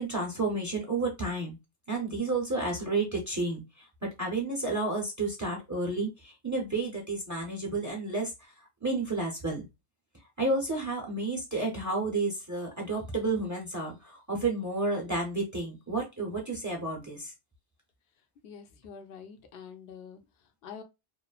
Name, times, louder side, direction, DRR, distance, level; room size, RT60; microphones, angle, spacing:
voice 1, 0.0-1.6 1.9-9.6 10.4-17.3, right 2 dB, 20° right, 0.5 m, -31 dB
voice 2, 18.4-20.8, left 6 dB, 65° left, 0.8 m, -46 dB
2.9 x 2.0 x 2.3 m
omnidirectional pair, 1.2 m